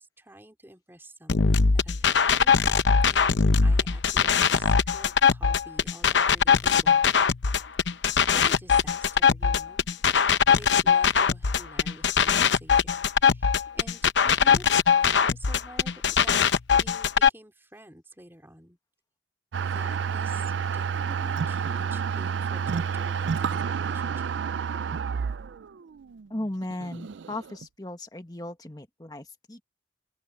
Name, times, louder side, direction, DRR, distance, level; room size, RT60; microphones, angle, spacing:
voice 1, 0.0-2.5 3.1-7.1 7.9-9.9 10.5-15.9 16.2-18.8 19.6-24.3, right 1 dB, 10° right, 4.0 m, -49 dB
sound 1, 1.3-17.3, left 6 dB, 75° left, 0.8 m, -21 dB
sound 2, 19.5-27.7, right 6 dB, 75° right, 0.4 m, -30 dB
voice 2, 26.3-29.6, left 1 dB, 20° left, 1.5 m, -36 dB
open air
head